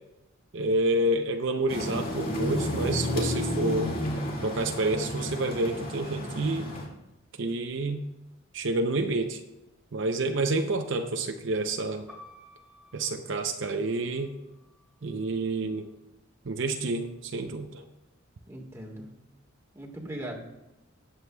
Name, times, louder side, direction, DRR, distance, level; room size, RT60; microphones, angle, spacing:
voice 1, 0.5-3.9 4.4-6.7 7.4-8.1 8.5-9.4 9.9-12.1 12.9-14.3 15.0-15.9 16.5-17.8, right 2 dB, 60° right, 5 dB, 0.6 m, -28 dB
sound 1, 1.7-6.9, left 1 dB, 45° left, 2.2 m, -31 dB
sound 2, 12.1-15.9 16.7-17.5, left 1 dB, 5° left, 2.7 m, -56 dB
voice 2, 18.5-19.1 19.7-20.4, right 1 dB, 15° right, -1 dB, 1.6 m, -39 dB
18.5 x 7.8 x 2.3 m, 0.98 s
head